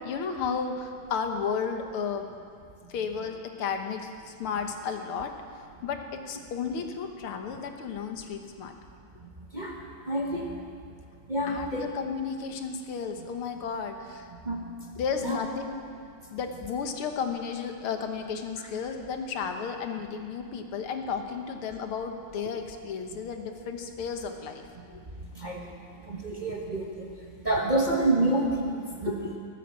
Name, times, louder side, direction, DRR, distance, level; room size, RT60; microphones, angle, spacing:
voice 1, 0.0-2.3 2.9-5.3 5.8-8.7 11.5-14.2 15.0-15.8 16.3-24.6 26.3-26.6 29.1-29.3, left 6 dB, 85° left, 5 dB, 2.0 m, -33 dB
voice 2, 10.1-10.6 11.3-11.9 14.5-14.6 15.2-15.4 25.4-25.6 26.1-27.0 27.4-29.2, right 2 dB, 25° right, -1 dB, 1.2 m, -28 dB
18.5 x 9.9 x 7.6 m, 2.3 s
omnidirectional pair, 2.3 m